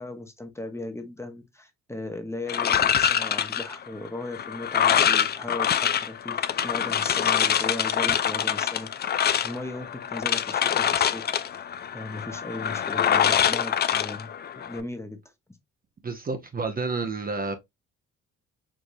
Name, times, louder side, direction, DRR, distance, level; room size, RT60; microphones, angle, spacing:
voice 1, 0.0-11.2 11.9-14.3 14.6-15.2, left 2 dB, 10° left, 0.8 m, -37 dB
sound 1, 2.5-14.8, left 9 dB, 35° left, 0.4 m, -25 dB
voice 2, 16.0-17.6, right 3 dB, 30° right, 0.7 m, -30 dB
4.7 x 2.6 x 2.5 m
cardioid pair, 90°, 30 cm